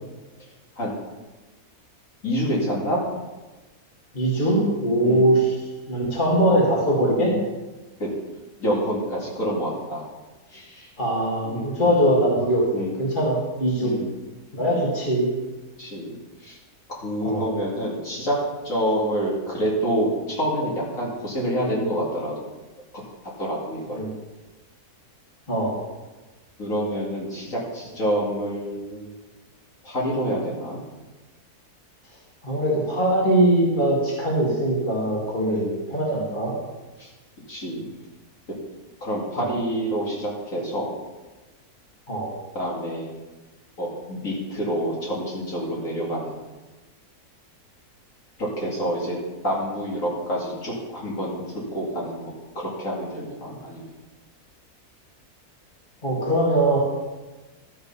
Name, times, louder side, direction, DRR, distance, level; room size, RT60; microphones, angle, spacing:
voice 1, 2.2-3.0 5.0-5.3 8.0-8.1 8.6-10.0 10.5-10.9 11.4-11.6 12.7-13.0 13.8-14.1 15.8-16.1 16.4-16.6 16.9-18.4 18.6-22.3 23.4-24.1 26.6-29.1 29.8-30.8 35.5-35.8 37.0-37.1 37.5-37.8 39.0-41.0 42.5-43.1 43.8-46.4 48.4-49.2 49.4-53.9, equal, 60° left, -5 dB, 2.9 m, -27 dB
voice 2, 4.1-5.6 5.9-7.3 11.0-12.6 13.0-13.9 14.6-15.3 17.2-17.5 23.9-24.1 25.5-25.8 32.4-36.5 39.4-39.5 42.1-42.3 56.0-56.8, right 1 dB, 30° left, -3 dB, 2.4 m, -21 dB
12.5 x 6.7 x 5.6 m, 1.2 s
omnidirectional pair, 1.6 m